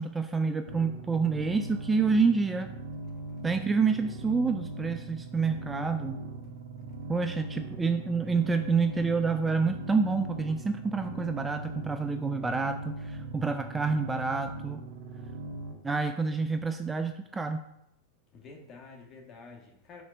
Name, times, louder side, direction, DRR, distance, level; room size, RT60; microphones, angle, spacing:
voice 1, 0.0-2.7 3.4-6.2 7.1-14.8 15.8-17.6, right 4 dB, 10° right, 8 dB, 0.4 m, -28 dB
sound 1, 0.7-15.7, right 2 dB, 70° right, 1.8 m, -40 dB
voice 2, 18.3-20.0, left 4 dB, 35° left, 2 dB, 1.5 m, -49 dB
5.0 x 4.2 x 6.0 m, 0.82 s
hypercardioid pair, 120°, 0 cm